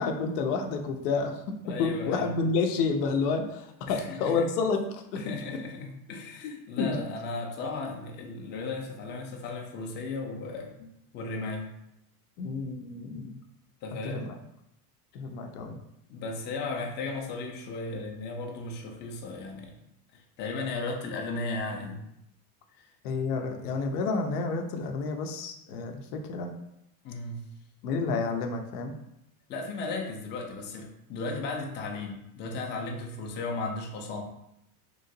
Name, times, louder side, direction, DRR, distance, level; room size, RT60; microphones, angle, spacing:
voice 1, 0.0-5.6 6.4-7.0 12.4-13.4 14.0-14.4 15.1-15.8 23.0-26.5 27.8-28.9, left 4 dB, 90° left, 5 dB, 0.6 m, -30 dB
voice 2, 1.6-2.3 3.9-4.5 5.1-10.9 11.1-11.7 13.8-14.3 16.1-19.7 20.1-22.0 27.0-27.4 29.5-34.2, left 3 dB, 25° left, 1 dB, 0.4 m, -35 dB
3.0 x 2.8 x 2.6 m, 0.82 s
supercardioid pair, 120°, 45 cm